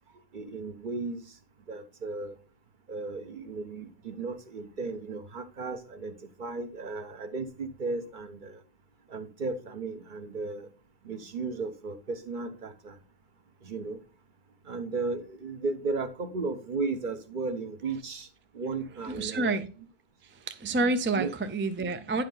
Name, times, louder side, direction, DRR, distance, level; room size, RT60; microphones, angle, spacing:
voice 1, 0.3-1.2 1.7-2.4 2.9-8.6 9.1-10.7 11.0-13.0 13.6-14.0 14.6-18.3 18.5-19.6 21.1-21.3, right 3 dB, 55° right, 1.0 m, -35 dB
voice 2, 19.1-19.7 20.2-22.2, right 3 dB, 20° right, 0.3 m, -29 dB
9.6 x 4.8 x 3.8 m
omnidirectional pair, 1.0 m